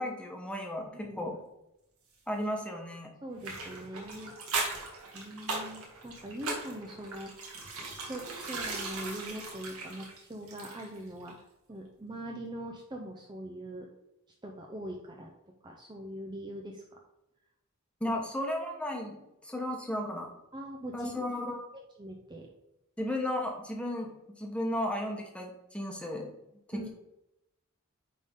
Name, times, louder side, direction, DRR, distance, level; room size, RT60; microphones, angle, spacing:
voice 1, 0.0-0.9 1.2-1.4 2.3-3.1 18.0-20.3 20.9-21.6 23.0-24.1 24.4-26.3 26.7-26.9, left 1 dB, 5° left, 1 dB, 1.2 m, -34 dB
voice 2, 0.9-1.4 3.2-4.4 5.1-7.3 8.0-11.4 11.7-13.9 14.4-15.3 15.6-17.0 18.0-18.2 20.5-21.2 22.0-22.5 26.7-26.9, right 1 dB, 20° right, 1 dB, 0.7 m, -42 dB
sound 1, 3.4-11.0 11.3-11.4, right 3 dB, 70° right, 1.8 m, -38 dB
9.3 x 3.8 x 3.7 m, 0.87 s
head